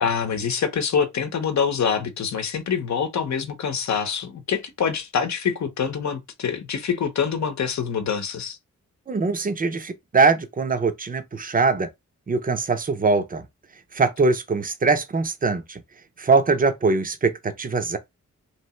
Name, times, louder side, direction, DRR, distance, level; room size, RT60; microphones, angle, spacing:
voice 1, 0.0-8.6, left 7 dB, 65° left, 0.9 m, -25 dB
voice 2, 9.1-11.9 12.3-13.4 13.9-15.8 16.2-18.0, right 4 dB, 30° right, 0.6 m, -22 dB
3.2 x 2.8 x 4.2 m
wide cardioid pair, 160°, 31 cm